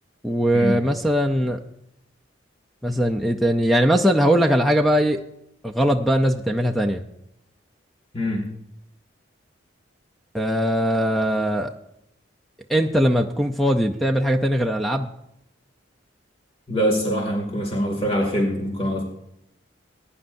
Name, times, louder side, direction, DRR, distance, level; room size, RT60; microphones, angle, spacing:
voice 1, 0.2-1.6 2.8-5.2 5.6-7.0 10.3-11.7 12.7-15.1, equal, ahead, 5 dB, 0.5 m, -20 dB
voice 2, 8.1-8.5 16.7-19.0, equal, 30° left, -1 dB, 2.3 m, -23 dB
20.5 x 10.0 x 2.6 m, 0.82 s
head